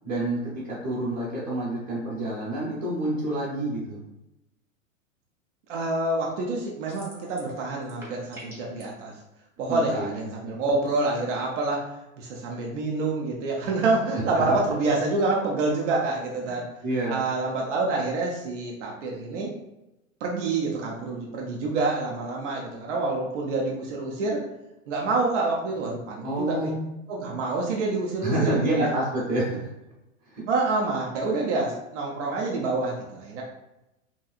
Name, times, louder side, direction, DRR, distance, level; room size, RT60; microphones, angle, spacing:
voice 1, 0.0-4.0 9.6-10.1 14.3-14.6 16.4-16.6 16.8-17.3 26.2-26.9 28.2-29.7 30.3-30.4, right 1 dB, 25° right, -10 dB, 1.0 m, -28 dB
voice 2, 5.7-9.1 9.6-11.9 12.2-16.7 17.1-19.5 20.2-24.4 24.9-26.7 27.1-28.9 30.5-33.4, right 3 dB, 65° right, -2 dB, 0.8 m, -27 dB
sound 1, 6.9-7.6 7.8-8.8, right 1 dB, 5° right, 0.7 m, -45 dB
3.1 x 2.8 x 2.4 m, 0.91 s
hypercardioid pair, 135°, 40 cm